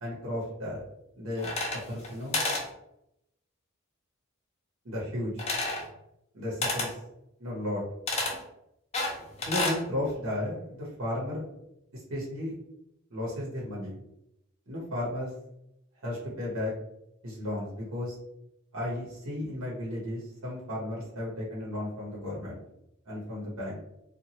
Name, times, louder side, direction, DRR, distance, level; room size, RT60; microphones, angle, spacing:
voice 1, 0.0-0.8 1.2-1.5 1.9-2.4 4.8-5.3 6.3-7.0 7.4-7.8 9.4-11.4 11.9-12.5 13.1-14.0 14.7-15.3 16.0-16.7 17.2-18.1 18.7-22.6 23.1-23.8, left 1 dB, 85° right, -5 dB, 1.0 m, -34 dB
sound 1, 1.4-2.1 2.3-2.7 5.4-5.9 6.6-6.9 8.1-8.4 8.9-9.8, left 2 dB, 30° left, 0.6 m, -30 dB
2.9 x 2.4 x 2.7 m, 0.81 s
head